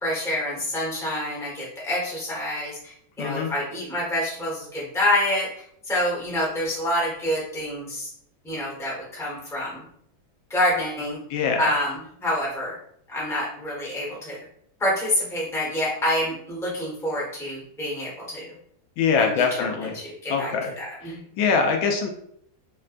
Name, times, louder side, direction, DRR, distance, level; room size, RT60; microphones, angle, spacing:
voice 1, 0.0-8.1 8.4-9.8 10.5-11.2 11.6-12.8 13.1-14.4 14.8-18.5 19.2-19.3 19.6-19.7 19.9-20.5 20.8-21.2, left 1 dB, ahead, -6 dB, 0.8 m, -27 dB
voice 2, 3.2-3.5 11.3-11.7 19.0-20.0 20.3-20.7 21.0-22.1, left 5 dB, 90° left, 3 dB, 1.4 m, -23 dB
4.4 x 2.1 x 2.5 m, 0.69 s
omnidirectional pair, 2.1 m